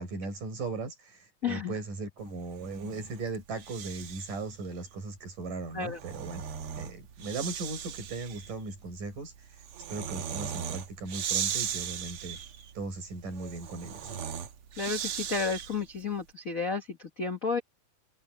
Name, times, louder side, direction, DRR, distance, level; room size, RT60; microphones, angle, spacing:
voice 1, 0.0-6.4 6.8-9.3 9.9-12.4 12.7-14.1, right 3 dB, 75° right, 8.1 m, -38 dB
voice 2, 1.4-1.7 5.7-6.0 14.8-17.6, left 5 dB, 75° left, 0.7 m, -32 dB
Breathing, 2.5-4.5 5.7-16.0, right 8 dB, 55° right, 1.7 m, -38 dB
open air
omnidirectional pair, 3.8 m